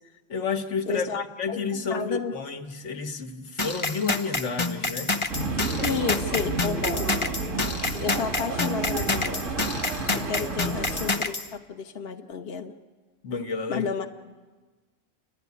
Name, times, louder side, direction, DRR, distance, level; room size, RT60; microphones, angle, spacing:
voice 1, 0.3-1.1 1.4-5.1 10.6-10.8 13.2-13.9, left 4 dB, 70° left, 6 dB, 1.5 m, -30 dB
voice 2, 0.9-2.3 5.8-7.2 8.0-9.5 10.1-12.7 13.7-14.1, left 6 dB, 55° left, 4 dB, 1.1 m, -32 dB
sound 1, 3.6-11.5, left 3 dB, 25° left, 0.8 m, -28 dB
sound 2, 5.3-11.1, right 3 dB, 80° right, 2.2 m, -31 dB
29.5 x 12.0 x 9.5 m, 1.3 s
omnidirectional pair, 1.3 m